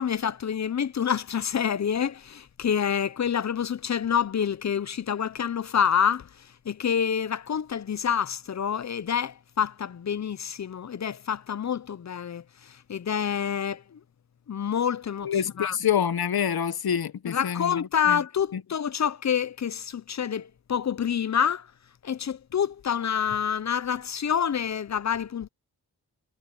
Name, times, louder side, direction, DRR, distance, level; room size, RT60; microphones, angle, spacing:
voice 1, 0.0-14.0 14.5-15.8 17.3-21.7 22.0-25.5, left 8 dB, 45° left, 0.7 m, -27 dB
voice 2, 15.2-18.2 18.5-18.6, left 8 dB, 70° left, 1.1 m, -27 dB
cardioid pair, 65°, 38 cm